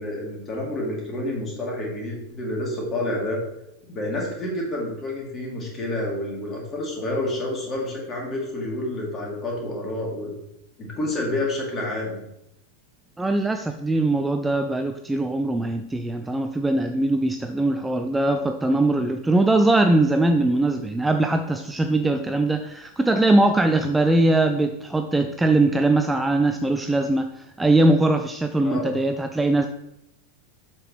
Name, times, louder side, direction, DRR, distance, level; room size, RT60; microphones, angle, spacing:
voice 1, 0.0-3.4 3.9-10.3 10.8-12.2 28.6-28.9, left 1 dB, 25° left, -2 dB, 2.6 m, -29 dB
voice 2, 13.2-29.7, right 2 dB, 10° right, 7 dB, 0.4 m, -21 dB
7.4 x 6.0 x 3.2 m, 0.82 s
figure-of-eight pair, 90°, 0 cm